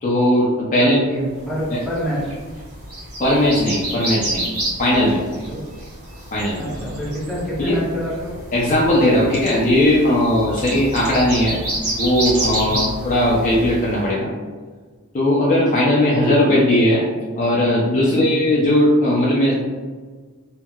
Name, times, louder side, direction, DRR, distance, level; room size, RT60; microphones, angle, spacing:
voice 1, 0.0-1.0 1.7-1.8 3.2-4.5 4.8-5.2 6.3-6.7 7.6-7.8 8.5-11.6 12.0-14.3 15.1-17.0 17.4-19.6, left 1 dB, 35° left, -5 dB, 0.4 m, -18 dB
voice 2, 0.8-2.3 5.5-5.6 6.6-8.4 10.5-10.7 12.6-12.9 18.1-18.3, equal, ahead, -8 dB, 0.8 m, -27 dB
sound 1, 1.5-14.0, right 1 dB, 85° right, 1.0 m, -29 dB
sound 2, 9.2-9.5 10.5-11.3 12.2-12.7 13.2-13.3 13.7-13.8, right 1 dB, 30° right, 0.8 m, -37 dB
2.9 x 2.6 x 2.2 m, 1.5 s
head